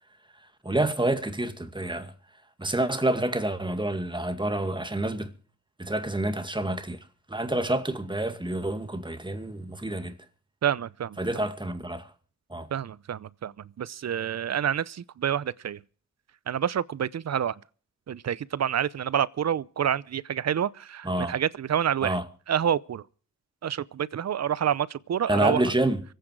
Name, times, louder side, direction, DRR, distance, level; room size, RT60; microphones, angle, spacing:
voice 1, 0.6-2.1 2.6-5.3 5.8-10.2 11.2-12.1 12.5-12.7 21.0-21.3 22.0-22.2 25.3-26.0, right 1 dB, 15° right, 2.2 m, -28 dB
voice 2, 10.6-11.2 12.7-15.8 16.5-17.6 18.1-22.2 22.5-23.0 23.6-25.6, right 9 dB, 50° right, 0.7 m, -28 dB
24.5 x 9.2 x 4.7 m
cardioid pair, 60°, 33 cm